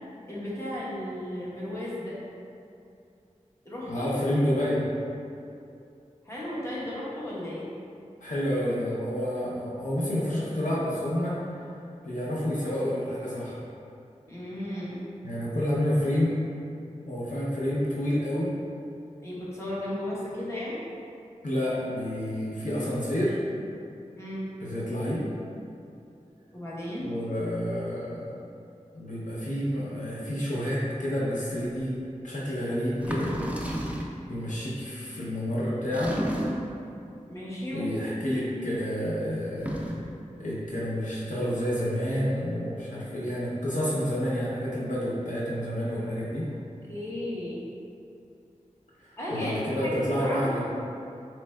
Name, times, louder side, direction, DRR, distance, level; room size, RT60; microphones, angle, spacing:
voice 1, 0.3-2.2 3.6-4.1 6.2-7.7 14.3-15.0 19.2-20.8 24.2-24.5 26.5-27.1 37.3-37.9 46.9-47.7 49.2-49.6 49.8-50.6, left 1 dB, 20° left, -8 dB, 0.9 m, -35 dB
voice 2, 3.9-4.9 8.2-11.4 12.0-13.6 15.2-16.4 17.1-18.5 21.4-23.3 24.6-25.3 27.0-28.4 28.9-32.0 32.2-33.3 34.3-36.2 37.7-39.8 40.4-46.5 49.0-50.6, equal, 70° left, -7 dB, 0.7 m, -29 dB
sound 1, 31.8-31.9 33.0-34.2 35.9-36.8 39.5-40.2, equal, 10° right, 0.4 m, -31 dB
4.2 x 3.1 x 2.2 m, 2.6 s
wide cardioid pair, 60°, 13 cm